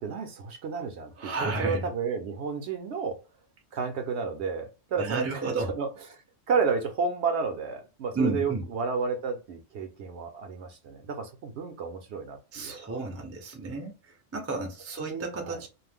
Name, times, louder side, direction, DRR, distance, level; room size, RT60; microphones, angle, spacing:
voice 1, 0.0-3.2 3.7-13.0 15.0-15.6, right 5 dB, 65° right, 0.8 m, -32 dB
voice 2, 1.2-1.8 5.0-5.7 8.1-8.7 12.5-14.0 14.3-15.7, right 3 dB, 20° right, 0.4 m, -31 dB
2.5 x 2.1 x 3.3 m
omnidirectional pair, 1.3 m